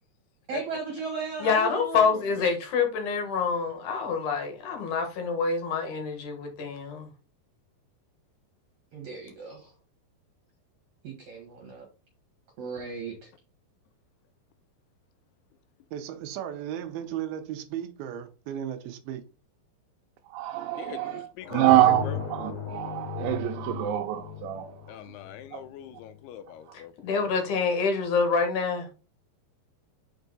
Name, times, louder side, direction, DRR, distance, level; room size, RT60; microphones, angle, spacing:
voice 1, 0.5-2.2 8.9-9.7 11.0-11.9 12.6-13.3, right 4 dB, 55° right, 2.3 m, -36 dB
voice 2, 1.4-7.1 27.0-28.9, left 5 dB, 60° left, 2.3 m, -26 dB
voice 3, 2.1-2.5 20.8-22.2 24.9-26.9, left 10 dB, 85° left, 2.4 m, -42 dB
voice 4, 15.9-19.2, right 10 dB, 75° right, 2.3 m, -35 dB
voice 5, 20.3-22.1 22.3-24.8 25.5-25.6, right 14 dB, 90° right, 3.0 m, -25 dB
sound 1, 21.4-26.1, left 7 dB, 40° left, 2.0 m, -37 dB
5.9 x 5.5 x 4.0 m
omnidirectional pair, 5.1 m